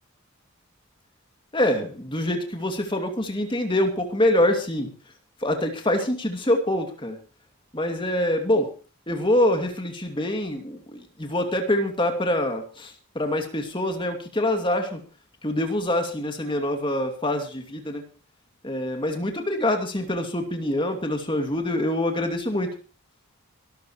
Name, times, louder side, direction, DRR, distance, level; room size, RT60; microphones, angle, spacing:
voice 1, 1.5-4.9 5.4-7.2 7.7-8.7 9.1-15.0 15.4-18.0 18.6-22.7, left 1 dB, 20° left, 4 dB, 2.4 m, -25 dB
24.0 x 13.0 x 3.1 m, 0.34 s
head